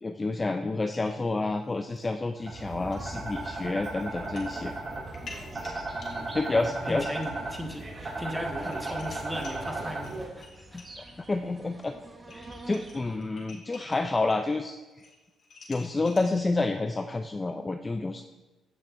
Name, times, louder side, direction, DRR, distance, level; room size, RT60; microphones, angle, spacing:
voice 1, 0.0-4.8 6.3-7.1 10.7-10.8 11.3-11.9 12.3-14.8 15.7-18.2, left 3 dB, 25° left, 7 dB, 0.4 m, -29 dB
sound 1, 0.8-2.1 2.4-2.5 2.9-3.1 4.1-4.5 4.9-11.1 11.8-11.9 12.2-14.6 14.8-16.7, left 3 dB, 60° left, 2.1 m, -50 dB
sound 2, 2.4-10.2, right 2 dB, 40° right, 2.9 m, -36 dB
sound 3, 5.0-13.2, right 1 dB, 25° right, 1.2 m, -49 dB
voice 2, 5.9-10.8, equal, 5° right, 0 dB, 1.6 m, -38 dB
15.0 x 6.0 x 2.6 m, 1.2 s
cardioid pair, 90°, 0 cm